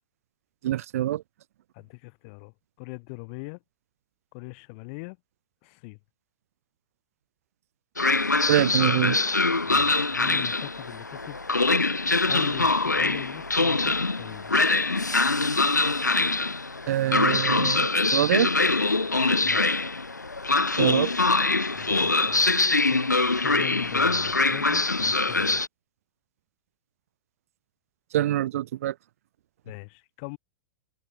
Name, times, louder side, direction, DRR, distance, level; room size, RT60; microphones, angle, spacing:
voice 1, 0.6-1.2 8.5-9.2 16.9-18.5 20.8-21.1 28.1-28.9, right 13 dB, 55° right, 1.2 m, -25 dB
voice 2, 1.7-3.6 4.3-5.2 5.6-6.0 9.6-11.4 12.3-14.5 19.4-19.6 21.7-22.6 22.9-25.6 29.6-30.4, left 33 dB, 40° left, 2.9 m, -41 dB
Train, 8.0-25.7, left 3 dB, 85° left, 1.2 m, -24 dB
figure-of-eight pair, 100°, 9 cm